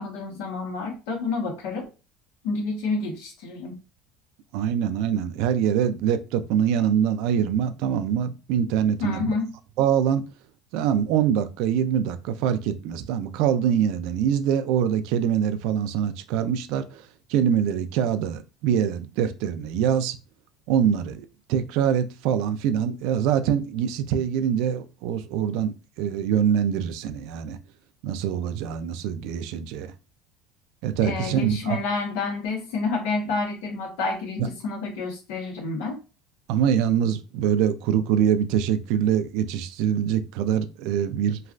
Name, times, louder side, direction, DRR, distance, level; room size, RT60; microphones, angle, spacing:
voice 1, 0.0-1.8 2.4-3.8 9.0-9.5 31.0-36.0, left 3 dB, 85° left, 1.1 m, -29 dB
voice 2, 4.5-9.3 9.8-10.2 10.7-17.0 17.3-20.2 20.7-27.6 28.0-29.9 30.8-31.8 36.5-41.4, right 9 dB, 70° right, 0.4 m, -24 dB
3.1 x 2.3 x 2.4 m
cardioid pair, 130°, 0 cm